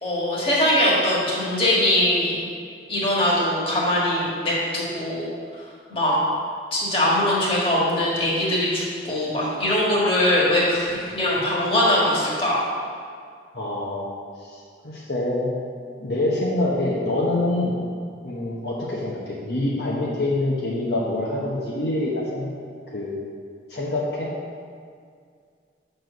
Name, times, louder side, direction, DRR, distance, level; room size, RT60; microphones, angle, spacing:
voice 1, 0.0-2.4 2.9-5.3 5.9-6.1 6.7-12.6, left 1 dB, 30° left, -6 dB, 1.8 m, -21 dB
voice 2, 13.5-14.1 14.4-15.5 16.0-17.7 18.2-22.5 22.9-23.1 23.7-24.3, left 1 dB, 65° left, -5 dB, 1.0 m, -25 dB
6.1 x 4.5 x 6.6 m, 2.1 s
head